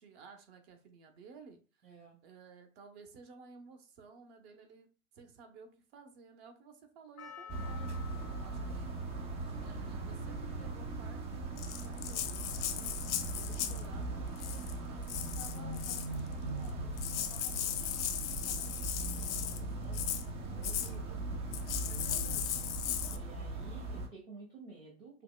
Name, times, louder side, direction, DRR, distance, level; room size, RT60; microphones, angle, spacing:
voice 1, 0.0-4.9 5.1-8.0 8.4-8.9 9.6-14.6 14.9-19.9 20.5-21.2 21.8-22.5, right 4 dB, 45° right, 6 dB, 1.0 m, -55 dB
voice 2, 1.8-2.2 19.0-20.2 20.5-21.2 22.0-22.4 23.0-25.2, right 3 dB, 85° right, -3 dB, 1.3 m, -53 dB
Percussion, 7.2-11.5 12.2-12.3, left 8 dB, 85° left, 0.9 m, -54 dB
sound 1, 7.5-24.1, right 2 dB, 15° right, 0.3 m, -39 dB
Rattle (instrument), 11.6-13.9 14.4-14.7 15.1-16.1 16.7-16.8 17.0-19.6 19.9-20.2 20.6-20.9 21.5-23.2, left 11 dB, 55° left, 0.6 m, -37 dB
5.7 x 2.1 x 2.2 m, 0.37 s
figure-of-eight pair, 95°, 42 cm